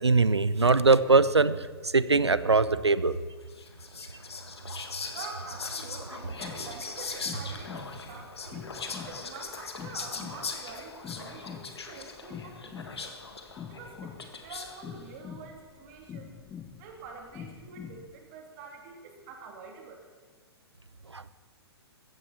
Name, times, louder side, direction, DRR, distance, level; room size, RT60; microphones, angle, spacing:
voice 1, 0.0-1.5 1.9-3.2 21.1-21.2, right 3 dB, 90° right, 16 dB, 0.6 m, -21 dB
Whispering, 3.5-14.9, left 4 dB, 75° left, 1.8 m, -40 dB
voice 2, 5.1-8.7 9.0-13.2 13.7-16.4 16.8-20.0, right 5 dB, 40° right, 2 dB, 3.1 m, -46 dB
sound 1, 6.2-18.1, left 8 dB, 20° left, 1.0 m, -45 dB
15.5 x 15.0 x 4.3 m, 1.4 s
figure-of-eight pair, 115°, 14 cm